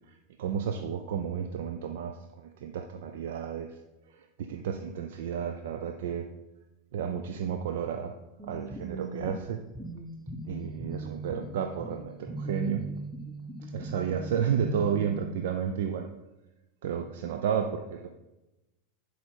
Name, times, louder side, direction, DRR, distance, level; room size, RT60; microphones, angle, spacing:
voice 1, 0.1-3.8 4.1-6.3 6.9-8.2 8.4-9.6 10.4-12.9 13.6-16.1 16.8-18.1, right 7 dB, 70° right, 6 dB, 0.5 m, -32 dB
sound 1, 8.4-15.2, right 2 dB, 5° left, 1.1 m, -39 dB
10.0 x 4.9 x 4.4 m, 1.0 s
hypercardioid pair, 95°, 0 cm